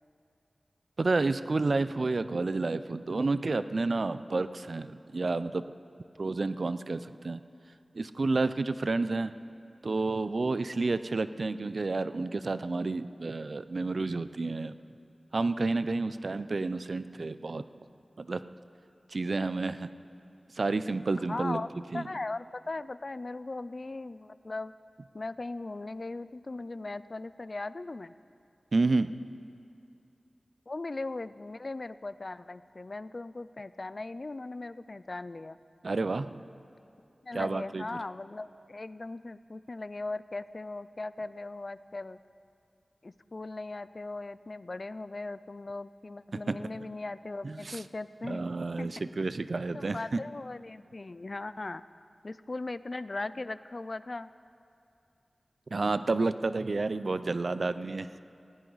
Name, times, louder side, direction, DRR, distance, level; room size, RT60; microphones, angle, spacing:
voice 1, 1.0-5.6 6.2-7.4 7.9-9.3 9.8-14.7 15.3-17.6 18.2-18.4 19.1-19.9 20.5-21.6 21.9-22.0 28.7-29.1 35.8-36.4 37.3-37.8 46.3-46.6 47.4-47.8 48.2-50.2 55.7-58.2, right 3 dB, 65° right, 13 dB, 0.5 m, -30 dB
voice 2, 21.2-21.7 21.9-24.7 25.1-28.1 30.7-35.6 37.2-42.2 43.0-48.4 48.8-48.9 49.7-51.8 52.2-54.3, left 2 dB, 50° left, 15 dB, 0.4 m, -38 dB
18.5 x 16.0 x 4.0 m, 2.6 s
wide cardioid pair, 50°, 0 cm